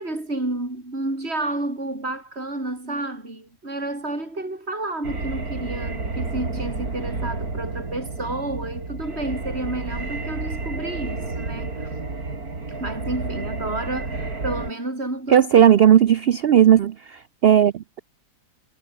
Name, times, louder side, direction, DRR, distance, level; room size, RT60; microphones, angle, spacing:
voice 1, 0.0-12.0 12.7-15.5, right 2 dB, 40° right, 6.5 m, -30 dB
sound 1, 5.0-14.7, right 3 dB, 65° right, 4.5 m, -31 dB
voice 2, 15.3-18.0, right 10 dB, 80° right, 0.5 m, -16 dB
omnidirectional pair, 1.7 m